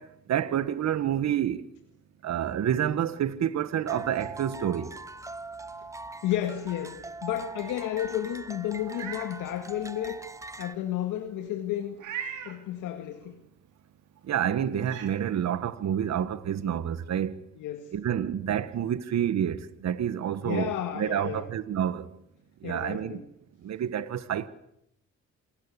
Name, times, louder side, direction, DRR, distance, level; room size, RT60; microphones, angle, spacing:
voice 1, 0.0-1.7 2.2-5.0 14.2-17.3 17.9-22.1 22.6-23.2 23.6-24.5, right 9 dB, 60° right, 1.5 m, -28 dB
sound 1, 3.9-10.8, right 2 dB, 10° right, 0.9 m, -42 dB
voice 2, 6.2-10.2 10.6-12.0 12.4-13.4 17.6-17.9 20.4-21.5 22.6-23.2, left 11 dB, 90° left, 2.0 m, -32 dB
Meow, 8.8-9.3 9.8-9.9 12.0-12.6 14.2-14.3 14.8-15.1, right 8 dB, 80° right, 4.1 m, -38 dB
26.5 x 18.5 x 8.5 m
cardioid pair, 90°, 30 cm